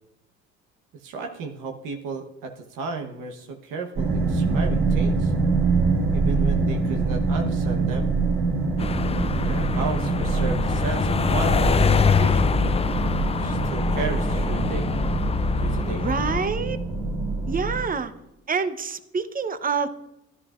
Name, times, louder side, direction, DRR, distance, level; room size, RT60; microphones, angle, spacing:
voice 1, 1.0-5.3 6.1-8.1 9.4-12.6 13.3-14.9 15.6-16.0, right 4 dB, 75° right, 3 dB, 1.1 m, -34 dB
sound 1, 4.0-17.8, right 3 dB, 60° right, 2.7 m, -24 dB
sound 2, 8.8-16.5, left 5 dB, 20° left, 0.4 m, -24 dB
voice 2, 15.9-16.8 17.5-18.1 18.5-19.9, right 5 dB, 25° right, 11 dB, 0.8 m, -27 dB
13.5 x 11.0 x 2.5 m, 0.91 s
supercardioid pair, 65°, 32 cm